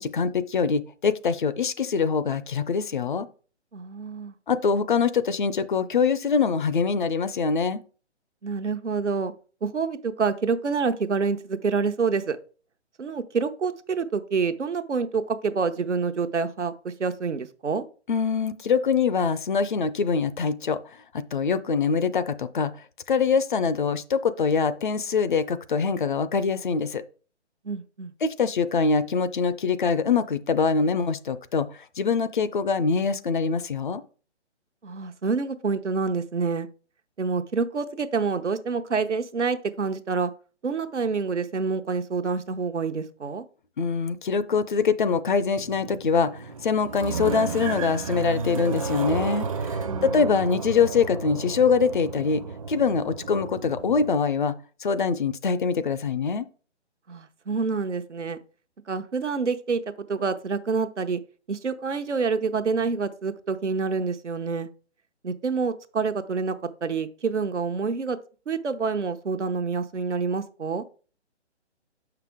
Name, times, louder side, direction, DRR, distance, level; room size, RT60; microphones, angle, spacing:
voice 1, 0.0-3.3 4.5-7.8 18.1-20.8 21.1-22.7 23.1-27.0 28.2-34.0 43.8-54.5 54.8-56.5, left 5 dB, 45° left, 0.5 m, -24 dB
voice 2, 3.7-4.3 8.4-9.3 9.6-12.4 13.0-17.8 27.6-28.1 34.8-36.7 37.2-40.3 40.6-43.4 49.9-50.2 57.1-58.4 58.9-59.8 60.1-61.2 61.5-64.7 65.2-66.6 66.8-68.2 68.5-70.8, right 5 dB, 80° right, 0.8 m, -27 dB
sound 1, 45.6-54.1, right 4 dB, 30° right, 0.5 m, -32 dB
7.0 x 5.8 x 3.5 m
figure-of-eight pair, 135°, 35 cm